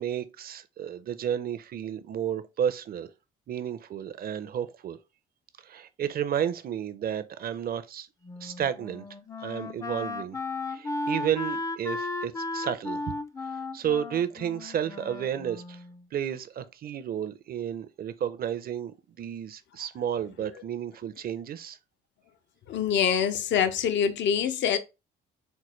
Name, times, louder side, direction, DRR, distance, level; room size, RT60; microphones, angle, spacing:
voice 1, 0.0-3.1 3.5-5.0 5.6-8.1 8.4-9.0 9.4-10.4 10.7-13.2 13.7-15.8 16.1-21.8, right 9 dB, 50° right, 0.5 m, -32 dB
Wind instrument woodwind instrument, 8.2-16.0, left 3 dB, 15° left, 0.4 m, -35 dB
voice 2, 22.7-24.8, left 8 dB, 65° left, 0.5 m, -25 dB
4.4 x 2.2 x 3.0 m
cardioid pair, 90°, 20 cm